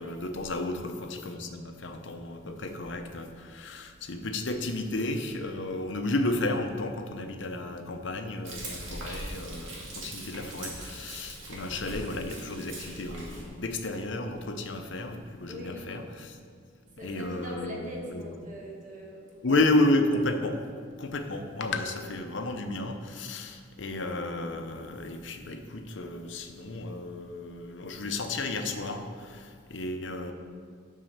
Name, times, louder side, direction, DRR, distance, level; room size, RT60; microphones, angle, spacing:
voice 1, 0.0-16.4 17.0-18.2 19.4-20.6 21.0-30.3, left 2 dB, 65° left, 5 dB, 0.8 m, -32 dB
Frying (food), 8.4-13.4, right 1 dB, 80° right, 2.0 m, -41 dB
voice 2, 15.5-16.0 16.8-19.6 22.1-22.2, equal, 40° right, -2 dB, 1.6 m, -42 dB
7.5 x 5.6 x 6.5 m, 2.1 s
head